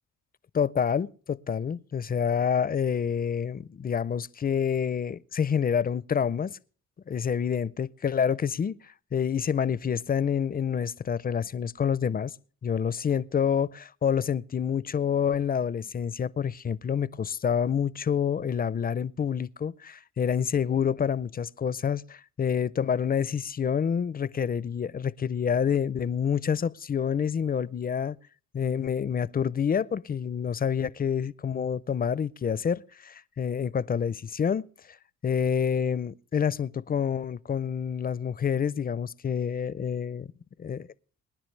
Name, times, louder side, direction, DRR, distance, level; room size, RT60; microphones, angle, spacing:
voice 1, 0.5-6.6 7.1-8.7 9.1-12.3 12.6-28.2 28.5-34.7 35.2-40.3 40.6-40.9, left 7 dB, 30° left, 0.5 m, -27 dB
25.5 x 10.0 x 3.2 m
cardioid pair, 90°, 30 cm